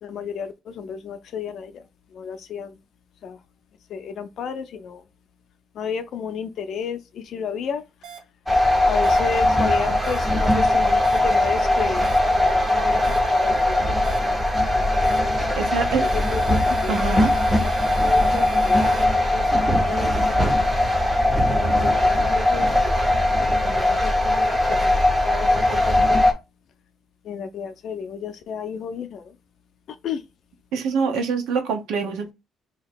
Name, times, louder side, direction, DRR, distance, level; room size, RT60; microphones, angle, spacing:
voice 1, 0.0-1.8 2.1-2.8 3.2-3.4 3.9-5.0 5.7-7.8 8.9-12.1 12.3-14.4 16.0-17.2 18.0-20.6 21.5-23.0 23.6-24.0 24.2-26.2 27.2-29.3 30.0-30.2, left 7 dB, 50° left, 0.5 m, -32 dB
sound 1, 8.0-8.2 9.0-9.2 10.0-10.2 11.0-11.2 12.0-12.2 13.0-13.2 14.0-14.2 15.0-15.2 16.0-19.0, right 8 dB, 60° right, 1.3 m, -39 dB
sound 2, 8.5-26.3, left 1 dB, 5° right, 0.6 m, -20 dB
voice 2, 15.6-16.1 16.9-17.3 30.7-32.3, right 5 dB, 80° right, 0.9 m, -25 dB
2.9 x 2.8 x 4.4 m
cardioid pair, 180°, 0 cm